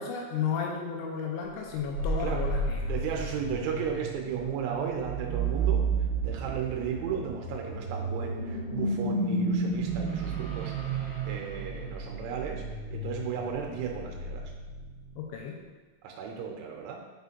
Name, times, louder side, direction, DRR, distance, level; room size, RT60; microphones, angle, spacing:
voice 1, 0.0-2.8 15.2-15.6, left 6 dB, 80° left, 0 dB, 2.9 m, -33 dB
sound 1, 1.7-15.2, right 3 dB, 55° right, 1.4 m, -32 dB
voice 2, 2.8-5.9 6.2-11.0 11.2-14.5 16.0-17.0, right 7 dB, 85° right, 1 dB, 3.0 m, -35 dB
8.0 x 5.7 x 2.7 m, 1.3 s
omnidirectional pair, 5.7 m